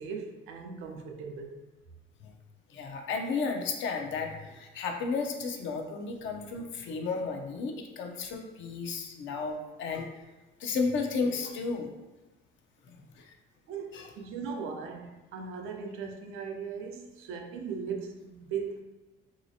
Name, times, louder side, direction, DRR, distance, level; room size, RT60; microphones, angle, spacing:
voice 1, 0.0-1.6 13.7-18.8, right 5 dB, 80° right, 3 dB, 0.5 m, -38 dB
voice 2, 2.7-10.1 10.6-11.9 12.9-13.3 13.9-14.1, left 4 dB, 65° left, 3 dB, 0.5 m, -33 dB
3.1 x 2.8 x 2.7 m, 1.1 s
cardioid pair, 90°, 21 cm